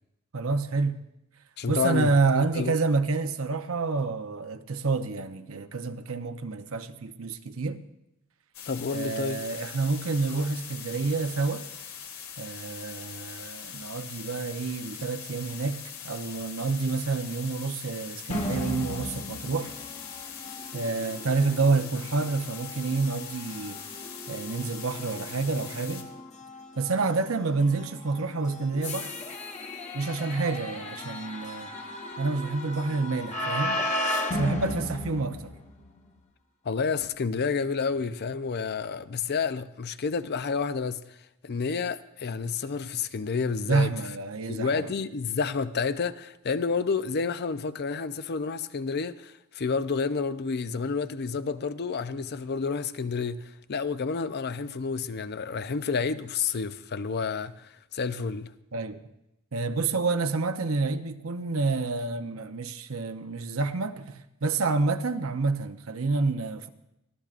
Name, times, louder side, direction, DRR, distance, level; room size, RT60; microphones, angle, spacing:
voice 1, 0.3-1.0 1.7-7.8 8.9-11.7 12.4-19.7 20.7-23.8 24.3-26.1 26.8-29.1 29.9-31.7 32.2-33.8 34.3-35.5 43.7-44.9 58.7-59.0 59.5-66.7, right 3 dB, 75° right, 0.8 m, -28 dB
voice 2, 1.6-2.8 8.7-9.4 36.6-41.2 41.4-43.9 44.5-58.5, left 5 dB, 50° left, 0.5 m, -30 dB
sound 1, 8.5-26.0, left 8 dB, 85° left, 1.8 m, -42 dB
sound 2, 18.3-36.0, left 1 dB, 35° left, 1.2 m, -36 dB
23.5 x 15.0 x 2.5 m
head